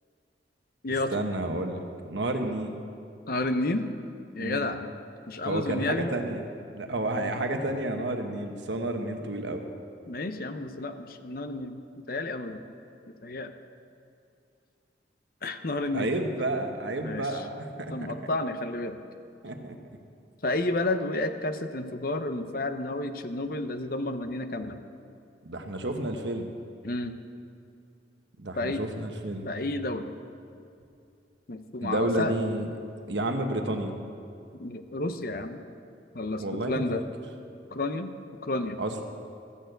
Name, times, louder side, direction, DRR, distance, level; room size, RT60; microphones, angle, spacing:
voice 1, 1.1-2.7 4.4-4.7 5.5-6.5 6.7-9.6 15.9-17.9 19.4-19.8 25.4-26.5 28.4-29.5 31.8-32.7 33.1-34.0 36.4-37.0 38.8-39.0, right 1 dB, 75° right, 5 dB, 1.1 m, -30 dB
voice 2, 3.3-3.9 4.3-4.9 5.3-6.1 10.1-11.8 12.1-12.6 13.2-13.5 15.4-16.1 17.0-17.4 17.9-19.0 20.4-24.8 26.8-27.2 28.6-28.8 29.4-30.1 31.5-32.3 34.6-35.6 36.1-37.0 37.7-38.1 38.4-38.8, left 2 dB, 50° left, 8 dB, 0.7 m, -31 dB
14.0 x 6.8 x 7.9 m, 2.5 s
head